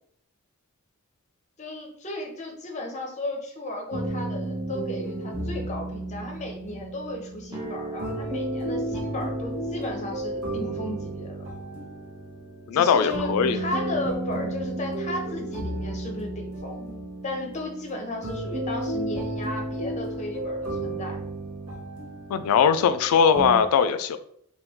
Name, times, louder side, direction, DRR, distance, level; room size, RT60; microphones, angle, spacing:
voice 1, 1.6-11.4 12.7-16.9 17.2-21.2, left 1 dB, 30° left, 2 dB, 0.6 m, -34 dB
sound 1, 3.9-23.6, right 1 dB, 75° right, 0.9 m, -33 dB
sound 2, 7.5-15.5, right 2 dB, 15° right, 0.6 m, -43 dB
voice 2, 12.7-13.6 22.3-24.2, left 7 dB, 80° left, 13 dB, 0.3 m, -20 dB
3.0 x 2.3 x 3.4 m, 0.69 s
head